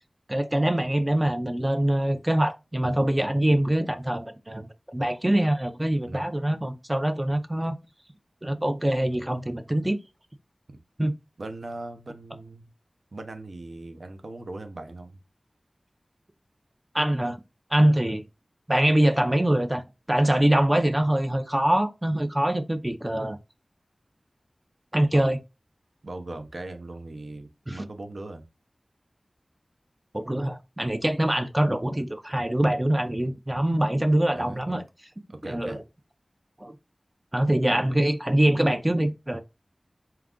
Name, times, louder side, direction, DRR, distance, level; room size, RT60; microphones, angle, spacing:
voice 1, 0.3-7.8 8.4-10.0 11.0-11.1 16.9-17.4 17.7-18.2 18.7-23.4 24.9-25.4 27.7-27.8 30.1-34.8 35.5-35.8 36.6-36.7 37.3-39.4, right 1 dB, 20° right, 0.5 m, -24 dB
voice 2, 11.4-12.6 13.1-15.2 25.1-25.3 26.0-28.4 34.3-34.8 35.3-35.8, right 2 dB, 75° right, 0.6 m, -39 dB
4.4 x 2.4 x 3.6 m
wide cardioid pair, 55°, 0 cm